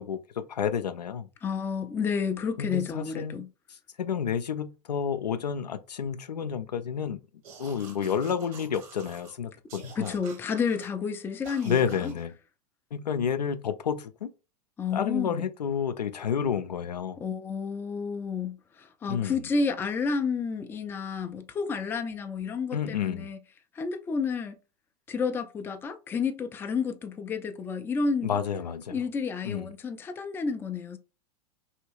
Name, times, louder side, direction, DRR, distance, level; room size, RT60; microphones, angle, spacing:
voice 1, 0.0-1.3 2.6-3.4 4.0-7.2 7.6-10.1 11.6-12.3 12.9-14.3 14.9-17.2 19.1-19.3 22.7-23.3 28.2-29.0 29.4-29.7, left 7 dB, 85° left, 0.4 m, -30 dB
voice 2, 1.4-3.5 10.0-12.1 14.8-15.4 17.2-23.4 23.7-24.6 25.1-28.4 28.9-31.0, left 5 dB, 10° left, 0.3 m, -31 dB
sound 1, 7.4-9.3 9.7-10.9 11.4-12.2, right 5 dB, 60° right, 1.0 m, -48 dB
2.9 x 2.7 x 3.0 m
figure-of-eight pair, 90°, 20 cm